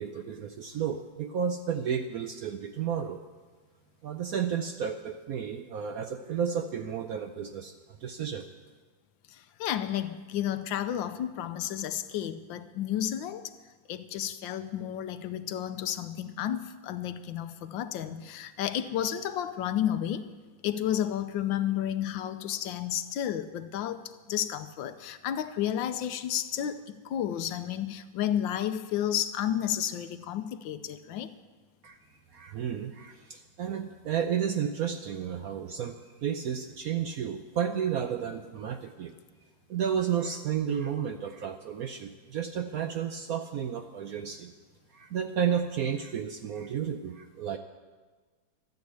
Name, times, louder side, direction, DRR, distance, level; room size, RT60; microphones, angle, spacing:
voice 1, 0.0-3.2 4.0-7.7 8.0-8.5 31.8-32.0 32.3-39.2 39.7-44.5 44.9-47.6, right 8 dB, 70° right, 7 dB, 0.9 m, -32 dB
voice 2, 9.3-13.5 13.9-20.2 20.6-31.3, left 10 dB, 80° left, 12 dB, 1.4 m, -32 dB
13.0 x 9.5 x 8.0 m, 1.4 s
omnidirectional pair, 2.1 m